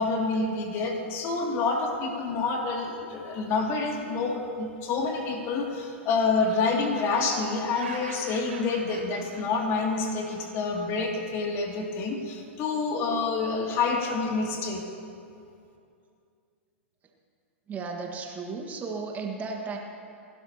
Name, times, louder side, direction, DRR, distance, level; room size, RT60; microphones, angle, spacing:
voice 1, 0.0-14.8, left 4 dB, 40° left, 0 dB, 2.5 m, -28 dB
Laughter, 5.4-6.1 6.4-10.8, right 4 dB, 75° right, 3.7 m, -45 dB
voice 2, 17.7-19.8, right 4 dB, 25° right, 1 dB, 1.7 m, -34 dB
28.0 x 12.0 x 2.9 m, 2.5 s
hypercardioid pair, 105°, 7 cm